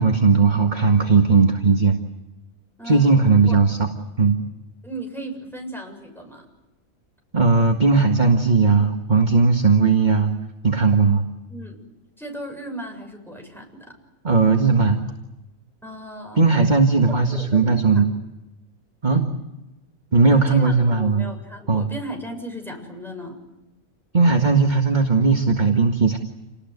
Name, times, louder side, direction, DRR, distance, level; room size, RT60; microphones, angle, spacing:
voice 1, 0.0-2.0 2.9-3.9 4.2-4.4 7.3-10.3 10.6-11.2 14.2-15.0 16.4-18.1 19.0-19.2 20.1-21.2 21.7-21.9 24.1-26.2, right 4 dB, 35° right, 2 dB, 1.9 m, -17 dB
voice 2, 2.8-3.2 3.5-3.6 4.8-6.4 11.5-11.9 12.2-14.0 15.8-16.5 17.1-18.1 19.1-19.3 20.3-23.4, right 1 dB, ahead, 2 dB, 7.2 m, -36 dB
29.0 x 20.0 x 9.6 m, 0.97 s
omnidirectional pair, 1.4 m